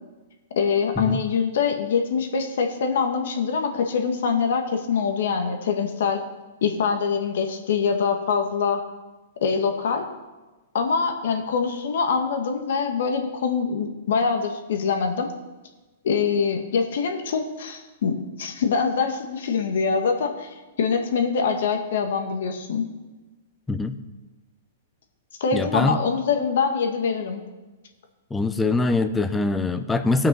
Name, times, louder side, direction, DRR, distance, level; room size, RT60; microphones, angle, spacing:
voice 1, 0.6-6.2 6.6-8.8 9.4-10.1 10.7-15.3 16.0-22.9 25.4-27.4, left 5 dB, 70° left, 4 dB, 1.7 m, -24 dB
voice 2, 25.5-26.0 28.3-30.3, left 3 dB, 10° left, 9 dB, 0.6 m, -23 dB
16.5 x 5.9 x 5.5 m, 1.2 s
hypercardioid pair, 140°, 0 cm